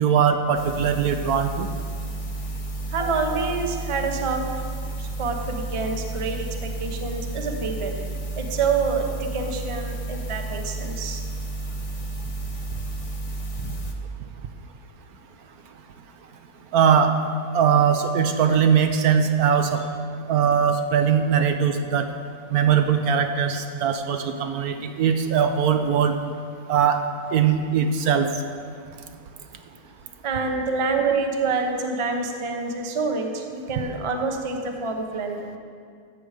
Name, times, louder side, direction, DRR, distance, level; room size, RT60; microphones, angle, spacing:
voice 1, 0.0-1.7 13.6-13.7 16.7-17.2 17.5-19.8 20.3-22.1 22.5-26.1 26.7-27.0 27.3-28.4, right 7 dB, 70° right, 7 dB, 1.1 m, -20 dB
sound 1, 0.5-13.9, right 2 dB, 40° left, 0.5 m, -32 dB
voice 2, 2.9-4.4 5.0-7.9 8.4-9.1 9.3-11.2 30.2-35.6, right 4 dB, 30° right, 3 dB, 0.6 m, -27 dB
13.5 x 7.9 x 5.0 m, 2.2 s
omnidirectional pair, 1.7 m